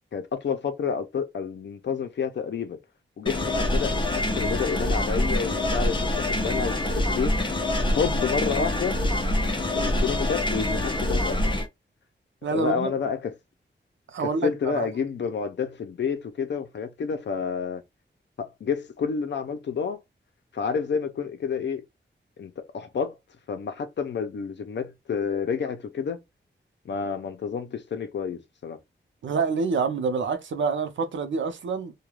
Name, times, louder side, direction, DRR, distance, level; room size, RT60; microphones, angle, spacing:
voice 1, 0.1-2.8 3.2-7.3 7.9-9.1 9.7-11.6 12.5-13.3 14.2-17.8 18.4-20.0 20.5-21.8 22.4-23.2 23.5-26.2 26.9-28.8, left 6 dB, 70° left, 0.6 m, -29 dB
sound 1, 3.3-11.7, left 1 dB, 25° left, 0.6 m, -25 dB
voice 2, 12.4-12.9 14.1-14.9 29.2-31.9, right 5 dB, 80° right, 0.6 m, -27 dB
2.3 x 2.2 x 3.0 m
wide cardioid pair, 165°, 19 cm